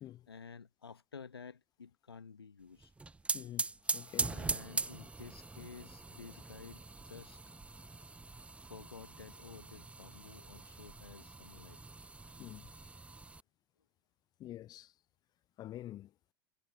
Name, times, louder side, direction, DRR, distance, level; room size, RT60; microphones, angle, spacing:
voice 1, 0.3-2.9 4.3-7.4 8.6-11.8, left 6 dB, 85° left, 1.5 m, -52 dB
sound 1, 2.8-13.4, right 3 dB, 10° right, 0.7 m, -41 dB
voice 2, 3.3-3.7 3.9-4.4 12.4-12.6 14.4-14.9 15.6-16.1, left 13 dB, 30° left, 0.4 m, -46 dB
figure-of-eight pair, 80°, 13 cm